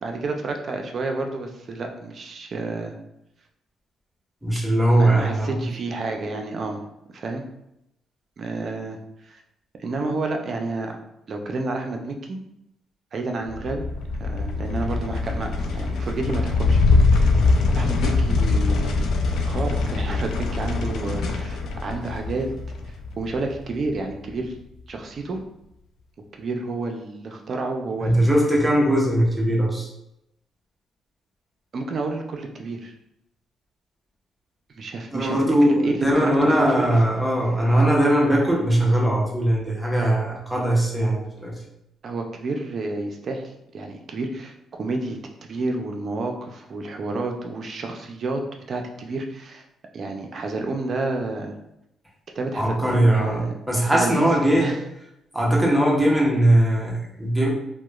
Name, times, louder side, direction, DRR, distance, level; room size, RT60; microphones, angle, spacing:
voice 1, 0.0-2.9 4.9-6.8 7.1-7.4 8.4-9.0 9.2-9.4 9.8-11.0 11.3-12.4 13.1-13.8 14.2-16.8 17.1-17.4 17.7-19.1 19.4-22.5 23.2-24.5 24.9-25.4 26.4-28.2 31.7-32.9 34.8-36.9 42.0-43.4 43.7-48.4 48.7-49.6 49.9-51.5 52.3-53.5 53.9-54.3 54.6-54.8, right 3 dB, 50° right, 3 dB, 0.4 m, -30 dB
voice 2, 4.4-5.7 28.0-29.9 35.1-41.6 52.6-54.7 55.3-57.5, right 1 dB, 5° right, -3 dB, 0.7 m, -20 dB
sound 1, 13.5-24.1, left 3 dB, 75° left, 0.3 m, -23 dB
2.8 x 2.1 x 2.3 m, 0.84 s
cardioid pair, 90°, 0 cm